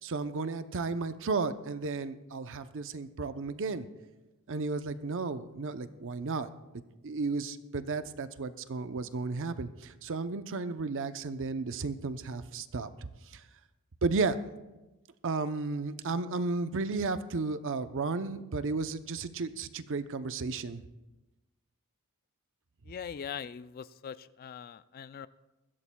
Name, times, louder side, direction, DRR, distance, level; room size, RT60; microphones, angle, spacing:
voice 1, 0.0-3.9 4.5-6.5 7.0-12.9 14.0-14.4 15.2-20.8, right 3 dB, 60° right, 11 dB, 0.7 m, -33 dB
voice 2, 22.8-25.3, left 7 dB, 40° left, 15 dB, 0.3 m, -41 dB
21.0 x 15.0 x 2.3 m, 1.0 s
head